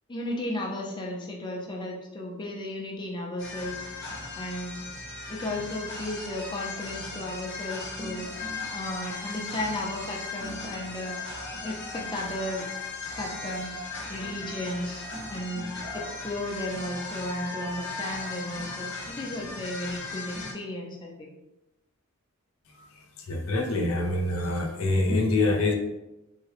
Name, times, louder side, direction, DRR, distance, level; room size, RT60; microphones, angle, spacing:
voice 1, 0.1-3.8 4.4-4.7 5.3-8.3 8.7-11.1 11.6-12.7 13.1-13.8 14.1-15.6 15.9-21.3, left 1 dB, 20° left, -1 dB, 0.6 m, -34 dB
sound 1, 3.4-20.5, left 3 dB, 60° left, 0.9 m, -37 dB
voice 2, 23.3-25.7, left 2 dB, 85° left, 2 dB, 0.6 m, -25 dB
3.6 x 2.2 x 3.3 m, 0.97 s
head